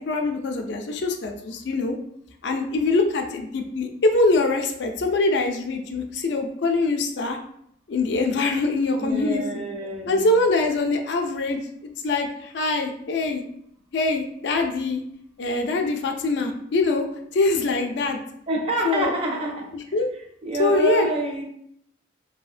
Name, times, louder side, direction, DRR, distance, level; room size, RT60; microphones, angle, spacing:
voice 1, 0.0-2.0 2.4-7.4 7.9-9.6 10.1-11.6 12.0-13.4 13.9-15.0 15.4-17.1 17.3-18.2 18.8-19.1 19.7-20.1 20.6-21.1, left 3 dB, 60° left, 4 dB, 0.4 m, -23 dB
voice 2, 9.0-10.2 18.5-19.7 20.4-21.4, right 2 dB, 30° right, 1 dB, 0.5 m, -27 dB
2.7 x 2.7 x 2.4 m, 0.71 s
head